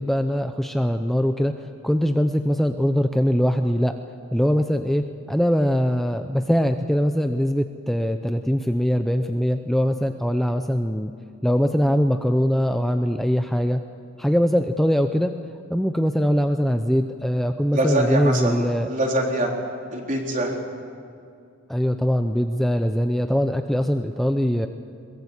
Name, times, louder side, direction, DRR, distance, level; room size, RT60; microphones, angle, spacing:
voice 1, 0.0-3.9 4.3-11.1 11.4-13.8 14.2-15.3 15.7-18.9 21.7-24.7, equal, ahead, 6 dB, 0.7 m, -22 dB
voice 2, 17.7-19.5 19.9-20.5, right 1 dB, 40° right, 0 dB, 3.7 m, -24 dB
22.0 x 22.0 x 8.3 m, 2.4 s
head